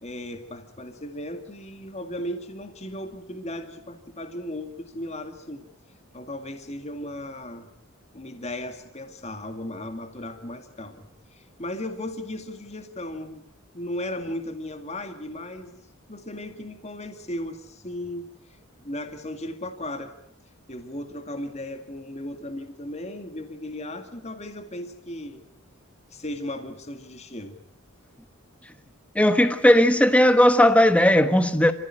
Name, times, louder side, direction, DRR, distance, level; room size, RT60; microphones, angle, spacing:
voice 1, 0.0-5.7 6.1-7.7 8.1-11.0 11.3-13.4 13.7-15.8 16.1-20.1 20.7-25.4 26.1-27.6, left 1 dB, 30° left, 2.1 m, -36 dB
voice 2, 29.1-31.7, left 1 dB, 5° left, 1.3 m, -17 dB
28.0 x 15.5 x 9.9 m
head